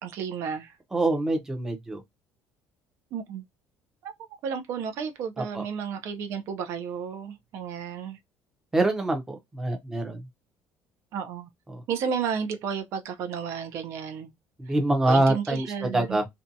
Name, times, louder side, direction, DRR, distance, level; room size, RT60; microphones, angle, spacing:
voice 1, 0.0-0.8 3.1-3.4 4.0-4.1 4.4-8.2 11.1-11.5 11.9-14.3 14.7-14.8 15.1-16.2, right 7 dB, 55° right, 0.5 m, -32 dB
voice 2, 0.9-2.0 5.5-5.6 8.7-10.2 11.7-11.8 14.6-16.3, right 2 dB, 10° right, 0.6 m, -25 dB
2.6 x 2.2 x 2.6 m
cardioid pair, 170°, 5 cm